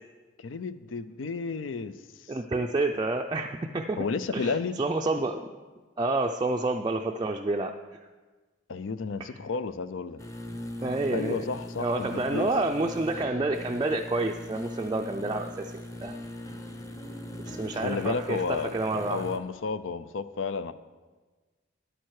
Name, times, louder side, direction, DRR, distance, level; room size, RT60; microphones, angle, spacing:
voice 1, 0.4-2.0 4.0-4.7 8.7-10.2 11.1-12.5 17.7-18.7 19.1-20.7, left 4 dB, 90° left, 13 dB, 0.5 m, -32 dB
voice 2, 2.3-4.0 4.3-5.4 6.0-8.0 9.2-9.3 10.8-11.5 11.8-16.1 17.4-19.3, right 2 dB, 20° right, 2 dB, 0.4 m, -29 dB
sound 1, 10.2-19.4, left 1 dB, 15° left, 0.7 m, -40 dB
10.5 x 8.8 x 4.8 m, 1.3 s
head